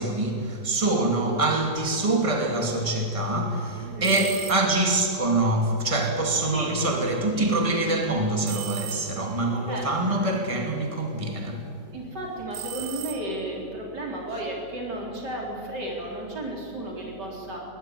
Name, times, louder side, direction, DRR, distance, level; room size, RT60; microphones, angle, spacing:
voice 1, 0.0-11.6, right 2 dB, 20° right, 2.5 m, -25 dB
voice 2, 3.8-4.2 6.5-6.7 7.4-7.5 9.7-9.9 11.3-11.5 11.9-17.6, right 1 dB, 90° right, 4.5 m, -33 dB
sound 1, 4.0-4.9 8.5-9.4 12.5-13.7, right 10 dB, 55° right, 0.9 m, -37 dB
21.5 x 16.5 x 9.2 m
omnidirectional pair, 1.8 m